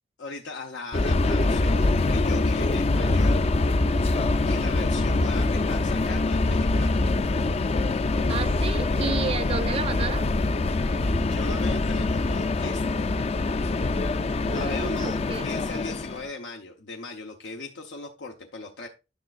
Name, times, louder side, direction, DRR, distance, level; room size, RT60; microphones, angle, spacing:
voice 1, 0.2-3.4 4.4-7.0 11.2-13.1 14.5-18.9, left 3 dB, 90° left, 0.8 m, -38 dB
Subway metro underground, 0.9-16.3, left 2 dB, 35° left, 0.4 m, -24 dB
voice 2, 8.3-10.3 14.4-15.5, right 5 dB, 35° right, 0.3 m, -32 dB
10.0 x 6.3 x 2.4 m
head